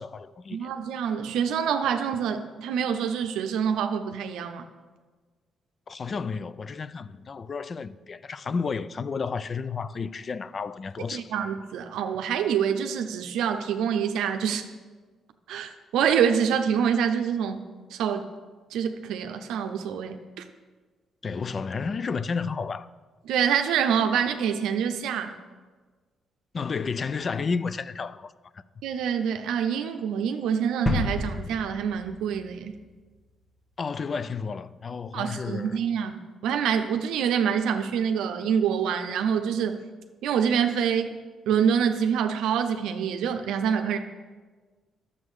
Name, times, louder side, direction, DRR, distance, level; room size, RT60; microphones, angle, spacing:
voice 1, 0.0-0.7 5.9-11.3 21.2-22.9 26.5-28.3 33.8-35.8, left 5 dB, 40° left, 0.4 m, -31 dB
voice 2, 0.5-4.6 11.1-14.6 15.5-17.7 17.9-18.2 18.7-20.4 23.3-25.4 28.8-32.7 35.1-39.8 40.2-41.2 41.5-44.0, right 7 dB, 85° right, 0.6 m, -26 dB
sound 1, 30.9-32.7 33.0-33.1, left 2 dB, 20° left, 1.2 m, -30 dB
10.5 x 7.1 x 4.8 m
cardioid pair, 90°, 0 cm